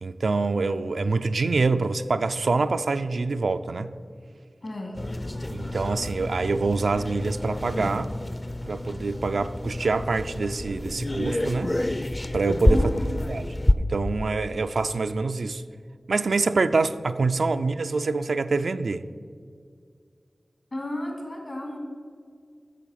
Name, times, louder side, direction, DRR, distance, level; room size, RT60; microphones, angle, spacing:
voice 1, 0.0-3.9 5.5-8.1 8.7-11.7 12.3-12.8 13.3-13.5 13.8-15.6 16.1-19.1, right 3 dB, 90° right, 0.3 m, -25 dB
voice 2, 4.6-5.0 12.7-13.1 20.7-21.8, left 1 dB, 65° left, 2.3 m, -33 dB
sound 1, 4.9-13.7, left 1 dB, 35° left, 0.5 m, -28 dB
9.3 x 6.8 x 5.6 m
cardioid pair, 45°, 0 cm